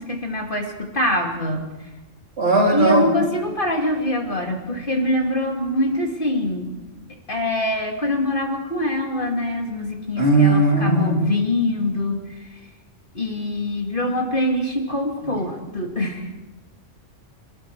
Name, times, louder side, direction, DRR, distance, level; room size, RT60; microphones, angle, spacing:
voice 1, 0.0-1.9 2.7-6.7 7.3-12.7 13.1-16.4, left 1 dB, 45° left, 1 dB, 2.7 m, -24 dB
voice 2, 2.4-3.0 10.2-11.2, right 2 dB, 60° right, -2 dB, 3.6 m, -17 dB
28.0 x 20.0 x 4.7 m, 1.1 s
omnidirectional pair, 1.3 m